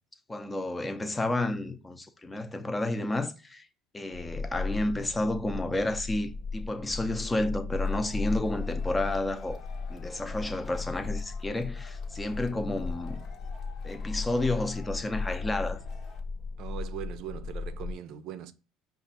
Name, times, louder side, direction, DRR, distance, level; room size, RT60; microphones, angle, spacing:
voice 1, 0.3-3.7 3.9-9.6 9.9-13.2 13.8-15.8, left 1 dB, 15° left, 0.6 m, -31 dB
sound 1, 4.1-17.9, left 4 dB, 65° left, 1.3 m, -36 dB
Male speech man speaking / Shout / Clapping, 7.8-16.2, left 4 dB, 50° left, 0.9 m, -52 dB
voice 2, 16.6-18.5, right 11 dB, 65° right, 0.5 m, -40 dB
5.1 x 2.5 x 4.1 m
supercardioid pair, 105°, 0 cm